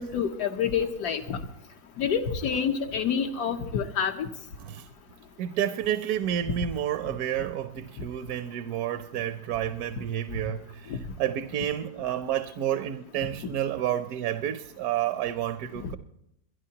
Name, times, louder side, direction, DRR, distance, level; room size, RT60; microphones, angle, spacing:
voice 1, 0.0-1.4 2.0-4.3, left 7 dB, 80° left, 1.4 m, -27 dB
voice 2, 5.4-16.0, right 11 dB, 75° right, 1.1 m, -30 dB
22.5 x 12.0 x 2.8 m
omnidirectional pair, 1.7 m